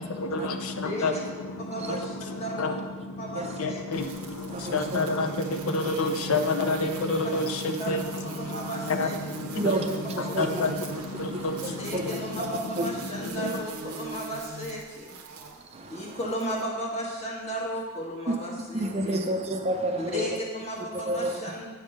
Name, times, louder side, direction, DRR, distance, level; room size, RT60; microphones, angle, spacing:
voice 1, 0.0-13.6, left 2 dB, 80° left, 6 dB, 0.5 m, -30 dB
voice 2, 0.8-1.2 1.6-2.8 3.2-3.8 6.1-6.2 7.8-7.9 8.2-9.2 10.1-10.4 11.8-15.2 15.9-19.2 20.0-21.7, equal, 30° left, -2 dB, 1.3 m, -35 dB
sound 1, 3.9-16.6, right 4 dB, 90° right, 0.8 m, -40 dB
voice 3, 9.6-9.9 10.2-10.5 11.1-12.1 12.4-12.9 15.3-16.2 18.3-18.4 18.7-20.4 20.9-21.4, right 1 dB, 30° right, 4 dB, 0.5 m, -30 dB
8.7 x 3.6 x 6.5 m, 1.4 s
head